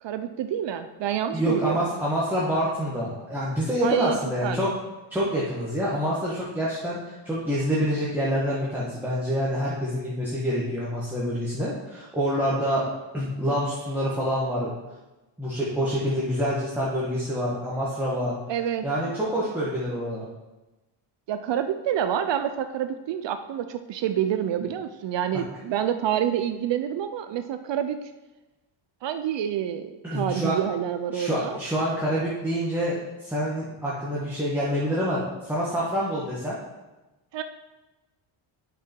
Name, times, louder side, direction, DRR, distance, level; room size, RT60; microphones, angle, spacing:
voice 1, 0.0-1.9 3.8-4.7 18.5-18.9 21.3-28.0 29.0-31.6 37.3-37.4, right 10 dB, 60° right, 9 dB, 0.6 m, -28 dB
voice 2, 1.3-4.8 5.1-12.8 13.1-14.7 15.4-18.4 18.8-20.2 30.0-30.6 31.1-36.6, equal, 5° right, -8 dB, 1.6 m, -27 dB
8.9 x 6.2 x 4.5 m, 1.1 s
cardioid pair, 145°, 50 cm